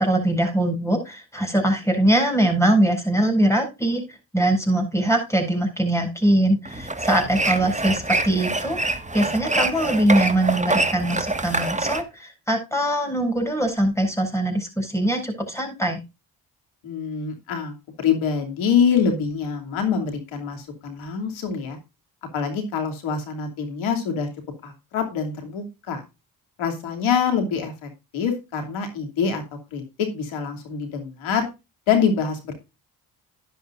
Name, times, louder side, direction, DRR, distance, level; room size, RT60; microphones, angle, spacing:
voice 1, 0.0-16.0, right 1 dB, 5° left, 2 dB, 7.9 m, -22 dB
sound 1, 6.7-12.0, right 2 dB, 15° right, 1.7 m, -25 dB
voice 2, 16.8-21.8 22.3-24.3 24.6-26.0 26.6-29.4 29.7-31.5 31.9-32.5, left 6 dB, 85° left, 4 dB, 2.8 m, -25 dB
12.0 x 11.0 x 2.5 m, 0.26 s
supercardioid pair, 45°, 46 cm